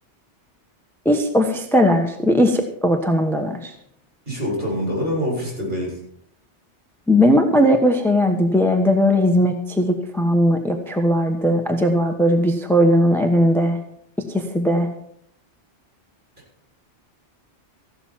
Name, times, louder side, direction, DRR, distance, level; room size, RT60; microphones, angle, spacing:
voice 1, 1.0-3.7 7.1-13.8 14.3-14.9, equal, ahead, 5 dB, 1.1 m, -18 dB
voice 2, 4.3-6.0, equal, 55° right, -4 dB, 7.0 m, -25 dB
15.0 x 12.0 x 4.5 m, 0.70 s
omnidirectional pair, 1.2 m